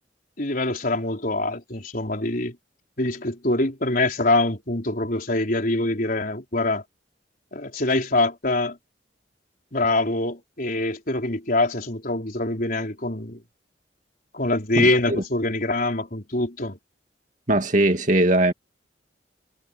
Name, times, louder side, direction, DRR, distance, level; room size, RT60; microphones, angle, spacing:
voice 1, 0.4-2.5 3.0-6.8 7.5-8.8 9.7-13.4 14.3-16.8, left 2 dB, 50° left, 4.7 m, -24 dB
voice 2, 17.5-18.5, right 1 dB, 45° right, 2.4 m, -19 dB
head